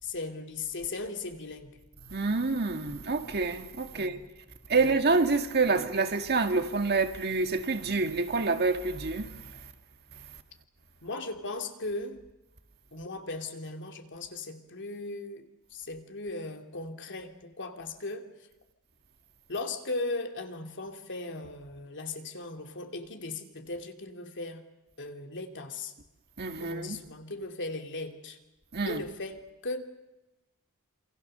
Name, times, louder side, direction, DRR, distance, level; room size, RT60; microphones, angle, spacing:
voice 1, 0.0-1.8 3.9-4.3 4.7-5.0 5.7-5.9 11.0-12.2 12.9-18.3 19.5-24.7 25.0-25.9 26.6-28.4 28.8-29.8, left 2 dB, 55° left, 2.8 m, -38 dB
voice 2, 2.1-4.2 4.7-9.4 26.4-27.0 28.7-29.0, right 3 dB, 50° right, 1.9 m, -27 dB
27.5 x 27.5 x 6.8 m
head